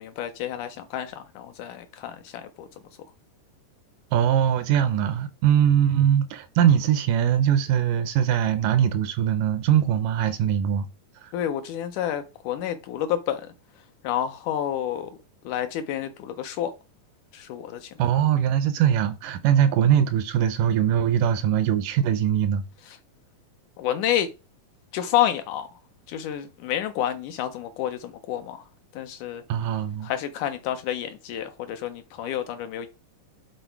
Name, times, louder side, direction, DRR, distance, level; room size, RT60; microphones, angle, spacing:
voice 1, 0.0-2.7 11.3-13.5 14.0-15.1 15.5-16.7 17.3-17.9 23.8-24.3 24.9-25.7 26.1-28.6 28.9-29.4 30.0-32.9, left 11 dB, 80° left, 1.9 m, -29 dB
voice 2, 4.1-10.9 11.2-11.3 18.0-22.6 29.5-30.1, right 9 dB, 80° right, 2.0 m, -21 dB
7.8 x 3.9 x 4.5 m
omnidirectional pair, 3.9 m